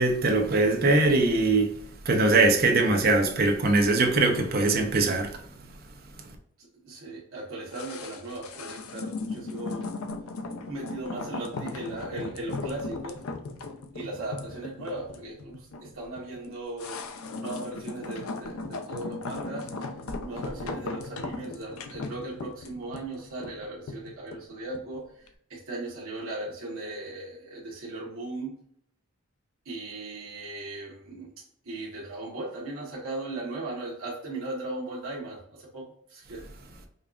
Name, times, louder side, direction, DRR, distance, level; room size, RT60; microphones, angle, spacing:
voice 1, 0.0-1.8 2.0-5.4, right 2 dB, 45° right, 0.6 m, -22 dB
voice 2, 6.6-9.9 10.7-13.2 13.9-17.1 17.4-19.7 20.2-28.5 29.6-31.3 31.6-36.4, right 2 dB, 75° right, 1.1 m, -37 dB
sound 1, 7.7-25.0 25.3-25.4, left 3 dB, 85° left, 0.5 m, -37 dB
5.2 x 2.4 x 2.4 m
head